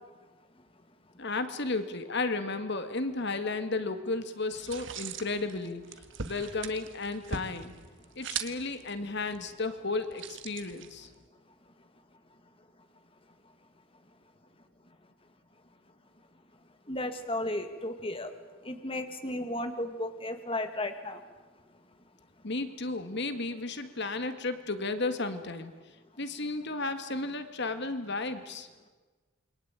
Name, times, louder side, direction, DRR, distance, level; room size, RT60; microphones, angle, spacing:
voice 1, 1.2-5.8 6.2-7.8 8.2-11.1 22.4-25.7 26.2-28.7, left 3 dB, 55° left, 9 dB, 2.0 m, -33 dB
sound 1, 4.5-11.3, right 6 dB, 60° right, 1.7 m, -42 dB
voice 2, 16.9-18.3 18.6-21.2, left 1 dB, 25° left, 7 dB, 1.9 m, -34 dB
28.5 x 23.5 x 9.0 m, 1.3 s
head